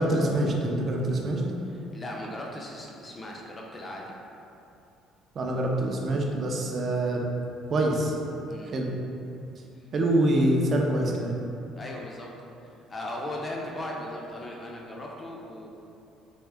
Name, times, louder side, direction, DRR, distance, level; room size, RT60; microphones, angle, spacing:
voice 1, 0.0-1.4 5.3-7.3 7.7-8.2 8.7-8.9 9.9-11.3, right 1 dB, 40° right, 0 dB, 0.5 m, -25 dB
voice 2, 1.9-4.1 8.5-8.7 9.8-9.9 11.8-12.3 12.6-15.7, left 1 dB, 20° left, -2 dB, 0.5 m, -37 dB
3.5 x 2.6 x 3.3 m, 2.7 s
cardioid pair, 135°, 0 cm